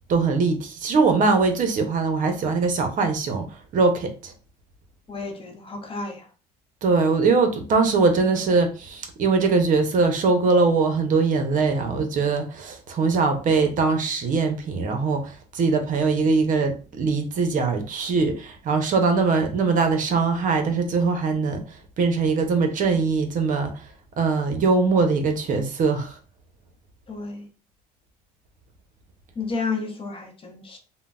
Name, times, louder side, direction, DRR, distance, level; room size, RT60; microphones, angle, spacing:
voice 1, 0.1-4.3 6.8-23.9 24.2-26.2, right 4 dB, 50° right, 0.7 m, -22 dB
voice 2, 5.1-6.3 27.1-27.5 29.4-30.8, left 4 dB, 30° left, 0.7 m, -31 dB
3.7 x 2.1 x 2.3 m
supercardioid pair, 100°, 18 cm